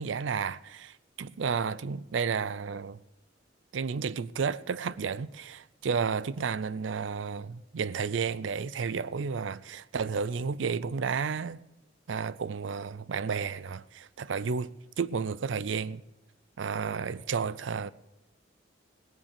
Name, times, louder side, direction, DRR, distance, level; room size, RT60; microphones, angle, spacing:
voice 1, 0.0-3.0 3.7-11.6 12.1-16.0 16.6-17.9, right 5 dB, 75° right, 0.5 m, -32 dB
17.5 x 8.8 x 6.7 m
head